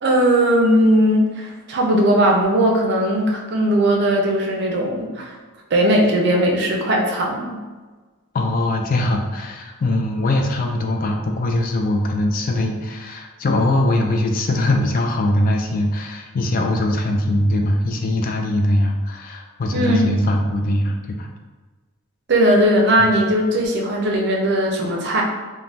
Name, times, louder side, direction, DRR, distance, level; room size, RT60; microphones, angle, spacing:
voice 1, 0.0-5.3 5.7-7.6 19.7-20.1 22.3-25.2, right 1 dB, 55° right, 0 dB, 0.5 m, -18 dB
voice 2, 8.3-21.3 23.0-23.1, left 1 dB, 45° left, 2 dB, 0.3 m, -21 dB
2.6 x 2.1 x 3.2 m, 1.3 s
head